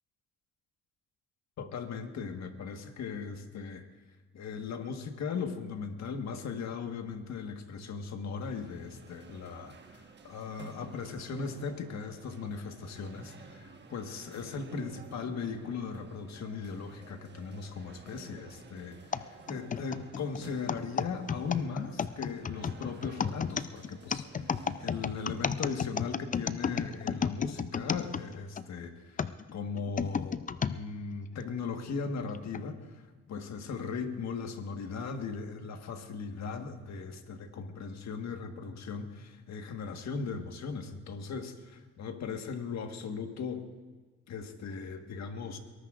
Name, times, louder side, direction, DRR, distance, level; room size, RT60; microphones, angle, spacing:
voice 1, 1.6-3.9 4.3-24.5 24.8-43.7 44.3-45.6, left 5 dB, 65° left, 6 dB, 1.5 m, -38 dB
sound 1, 8.3-25.6, right 4 dB, 35° right, 1.3 m, -53 dB
sound 2, 19.1-28.6 29.2-30.8 31.4-31.5 32.3-32.6, left 6 dB, 25° left, 0.5 m, -33 dB
22.5 x 18.5 x 2.5 m, 1.4 s
cardioid pair, 90°, 30 cm